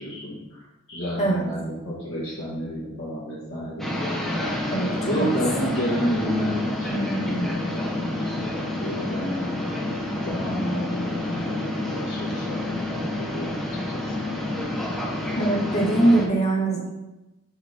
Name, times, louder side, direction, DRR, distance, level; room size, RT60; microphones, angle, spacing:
voice 1, 0.0-3.9 5.0-9.9 10.2-13.6 14.0-14.1, equal, 60° left, -9 dB, 1.6 m, -30 dB
sound 1, 3.8-16.3, left 1 dB, ahead, 0.7 m, -29 dB
voice 2, 4.7-5.3 15.3-16.9, right 2 dB, 30° left, -3 dB, 1.4 m, -22 dB
4.9 x 3.9 x 4.9 m, 1.0 s
head